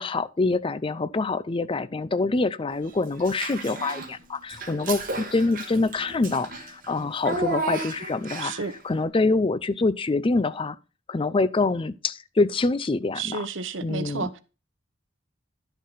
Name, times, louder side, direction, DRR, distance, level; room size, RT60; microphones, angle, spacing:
voice 1, 0.0-8.5 8.8-10.8 11.1-13.5 13.8-14.3, left 3 dB, 25° left, 0.4 m, -25 dB
Child speech kid speaking / Bathtub (filling or washing), 3.2-4.1 4.5-8.7, right 2 dB, 45° right, 2.1 m, -33 dB
voice 2, 8.4-8.7 13.2-14.4, right 4 dB, 65° right, 1.0 m, -31 dB
11.5 x 6.5 x 4.0 m
head